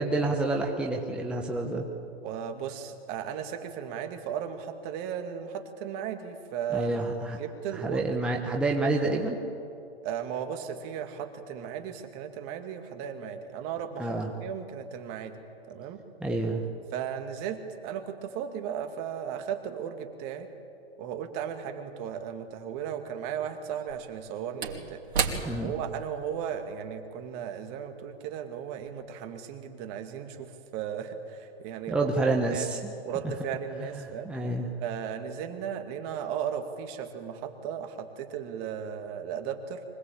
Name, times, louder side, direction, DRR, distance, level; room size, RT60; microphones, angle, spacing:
voice 1, 0.0-1.9 6.7-7.4 7.7-9.4 14.0-14.3 16.2-16.6 25.4-25.7 31.9-32.8 34.2-34.7, right 2 dB, 5° right, -1 dB, 1.3 m, -28 dB
voice 2, 2.2-6.9 7.3-8.1 10.0-14.1 14.4-15.4 15.7-16.0 16.9-20.5 21.0-25.0 25.6-32.1 32.5-32.7 33.0-34.3 34.8-39.8, right 8 dB, 35° right, 6 dB, 2.2 m, -36 dB
Slam / Wood, 22.2-22.3 23.7-28.4 28.7-28.9, right 6 dB, 75° right, 3.1 m, -36 dB
24.5 x 19.5 x 8.7 m, 2.6 s
hypercardioid pair, 140°, 32 cm